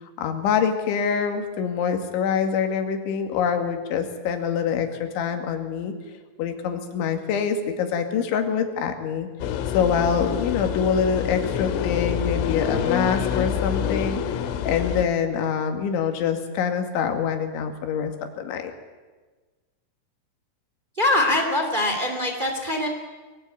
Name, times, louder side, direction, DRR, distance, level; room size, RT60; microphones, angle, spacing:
voice 1, 0.2-5.9 6.4-9.3 9.7-14.4 14.7-18.1 18.4-18.7, left 7 dB, 65° left, 5 dB, 4.3 m, -25 dB
sound 1, 9.4-15.1, left 9 dB, 85° left, 3.9 m, -27 dB
voice 2, 20.9-22.9, left 1 dB, 30° right, 3 dB, 0.8 m, -23 dB
24.0 x 20.0 x 9.7 m, 1.3 s
omnidirectional pair, 6.0 m